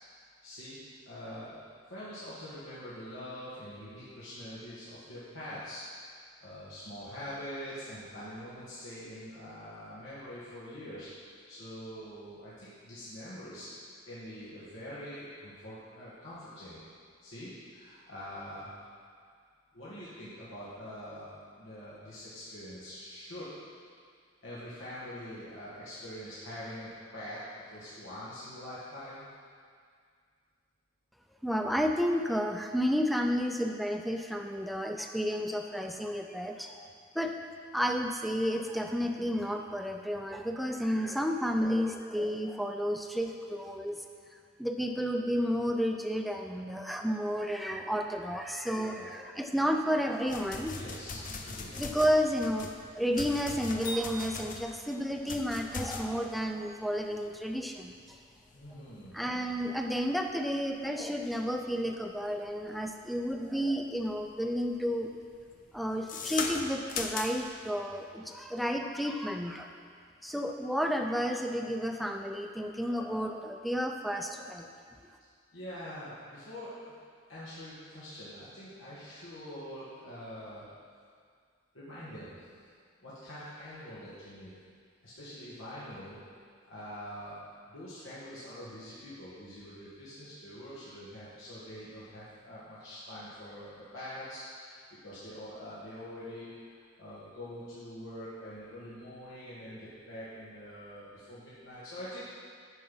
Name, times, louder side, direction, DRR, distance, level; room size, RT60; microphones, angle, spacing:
voice 1, 0.0-0.8 1.1-1.6 1.9-5.8 6.4-13.7 14.1-16.8 17.2-18.7 19.7-23.5 24.4-29.2 40.9-41.2 48.8-49.1 50.8-51.7 58.5-59.2 75.5-76.7 77.3-80.7 81.7-82.5 83.0-84.5 85.0-86.2 86.7-87.4 87.7-94.8 95.0-102.2, equal, 85° left, -11 dB, 1.9 m, -44 dB
voice 2, 31.4-36.8 37.1-37.3 37.7-44.0 44.6-50.8 51.7-57.9 59.1-65.1 65.7-69.7 70.2-74.7, equal, ahead, 4 dB, 0.4 m, -31 dB
sound 1, 50.3-63.6 64.0-64.4 64.7-67.6, left 4 dB, 40° left, 0.6 m, -40 dB
9.2 x 5.7 x 5.6 m, 2.1 s
head